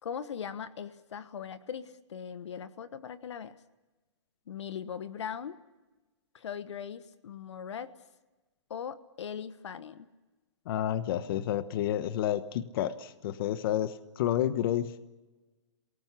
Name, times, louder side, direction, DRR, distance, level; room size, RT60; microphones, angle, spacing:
voice 1, 0.0-3.5 4.5-5.6 6.3-7.9 8.7-10.1, left 7 dB, 75° left, 13 dB, 1.3 m, -40 dB
voice 2, 10.7-15.0, left 11 dB, 50° left, 13 dB, 1.3 m, -30 dB
27.5 x 19.0 x 8.3 m, 1.2 s
hypercardioid pair, 135°, 15 cm